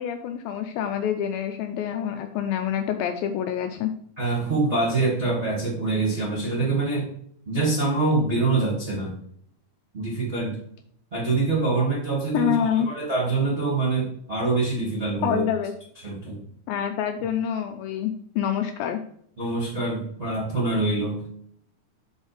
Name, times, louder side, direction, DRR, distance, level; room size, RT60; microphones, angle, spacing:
voice 1, 0.0-3.9 12.3-12.9 15.2-15.7 16.7-19.0, left 9 dB, 80° left, 6 dB, 2.2 m, -26 dB
voice 2, 4.2-7.1 7.4-9.2 9.9-10.5 11.1-15.4 16.0-16.4 19.4-21.3, right 3 dB, 30° right, -5 dB, 1.2 m, -25 dB
6.2 x 5.4 x 4.9 m, 0.64 s
omnidirectional pair, 4.6 m